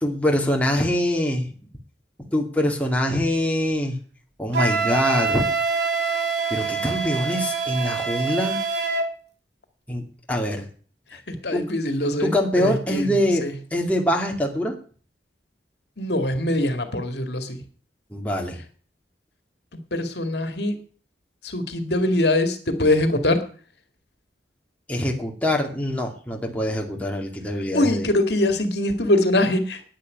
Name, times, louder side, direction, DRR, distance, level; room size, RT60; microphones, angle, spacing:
voice 1, 0.0-1.5 2.3-4.0 4.4-5.4 6.5-8.6 9.9-10.7 11.1-11.2 11.5-11.6 12.2-13.5 13.7-14.8 18.1-18.6 24.9-28.1, left 1 dB, 10° left, 0 dB, 2.4 m, -24 dB
Wind instrument woodwind instrument, 4.5-9.1, right 4 dB, 85° right, 3.4 m, -25 dB
voice 2, 11.1-13.5 16.0-17.6 19.7-20.8 21.4-23.4 27.7-29.8, left 1 dB, 70° left, 8 dB, 2.1 m, -23 dB
10.5 x 9.7 x 9.4 m, 0.43 s
head